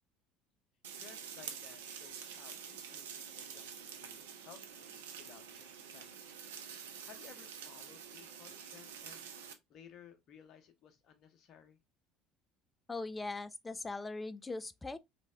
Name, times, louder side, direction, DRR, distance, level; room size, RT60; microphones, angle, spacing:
sound 1, 0.8-9.5, right 7 dB, 75° right, 0.5 m, -48 dB
voice 1, 1.0-5.7 5.9-6.3 7.0-9.3 9.7-11.8, left 8 dB, 50° left, 0.8 m, -58 dB
voice 2, 12.9-15.0, left 3 dB, 15° left, 0.4 m, -40 dB
3.2 x 2.5 x 3.2 m
figure-of-eight pair, 65°, 0 cm